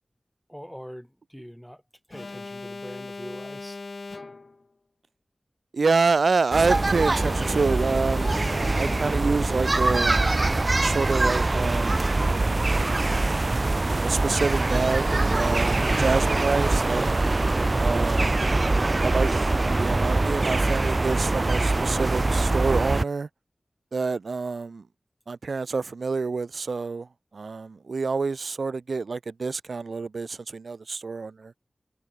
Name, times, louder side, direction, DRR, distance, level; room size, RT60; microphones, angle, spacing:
voice 1, 0.5-1.8 2.1-3.8 18.3-18.7, equal, ahead, 2.3 m, -42 dB
Alarm, 2.1-4.7 7.1-9.7, left 3 dB, 55° left, 1.1 m, -39 dB
voice 2, 5.7-10.2 10.8-12.1 12.7-12.8 13.1-13.4 14.0-17.1 17.8-18.5 19.0-19.4 19.8-23.3 23.9-24.8 25.3-27.1 27.3-31.5, right 4 dB, 75° right, 1.7 m, -27 dB
sound 1, 6.5-23.0, right 2 dB, 40° right, 1.3 m, -23 dB
wide cardioid pair, 65°, 0 cm